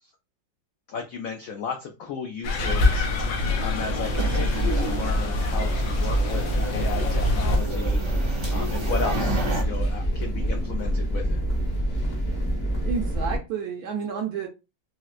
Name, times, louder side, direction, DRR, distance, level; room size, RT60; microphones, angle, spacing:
voice 1, 0.9-11.4, left 5 dB, 85° left, 0.7 m, -35 dB
sound 1, 2.4-7.6, left 3 dB, 65° left, 1.1 m, -27 dB
sound 2, 2.6-9.6, right 1 dB, 40° right, 0.4 m, -31 dB
sound 3, 4.0-13.4, right 1 dB, 40° left, 0.6 m, -26 dB
voice 2, 12.8-14.5, right 6 dB, 70° right, 0.9 m, -30 dB
4.3 x 2.0 x 2.4 m
omnidirectional pair, 2.1 m